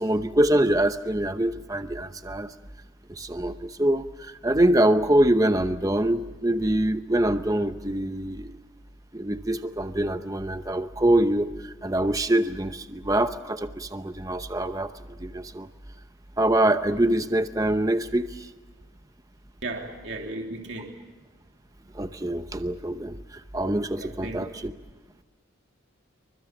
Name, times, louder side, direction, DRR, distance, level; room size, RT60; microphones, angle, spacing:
voice 1, 0.0-2.5 3.1-8.5 9.1-15.7 16.4-18.5 21.9-24.7, right 1 dB, 15° right, 9 dB, 0.8 m, -24 dB
voice 2, 19.6-20.9 24.0-24.5, right 2 dB, 55° right, 2 dB, 3.0 m, -35 dB
28.0 x 24.0 x 7.3 m, 1.2 s
head